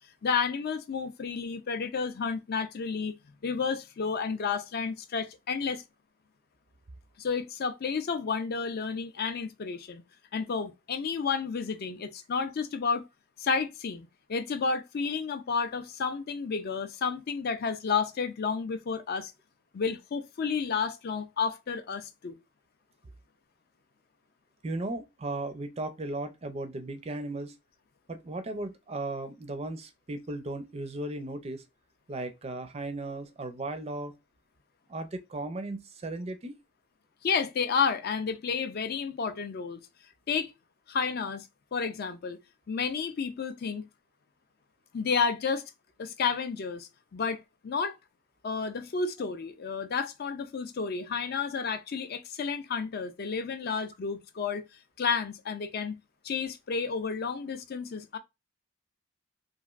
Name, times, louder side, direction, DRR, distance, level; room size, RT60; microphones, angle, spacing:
voice 1, 0.2-3.1 3.4-5.8 7.2-10.0 10.3-13.1 13.4-19.3 19.7-22.4 37.2-39.8 40.3-40.5 40.9-42.4 42.7-43.9 44.9-45.7 46.0-47.9 48.4-54.6 55.0-56.0 56.2-58.2, left 5 dB, 50° left, 0.4 m, -31 dB
voice 2, 24.6-27.5 28.1-31.6 32.1-34.1 34.9-36.5, right 2 dB, 30° right, 0.4 m, -36 dB
3.0 x 2.5 x 2.3 m
head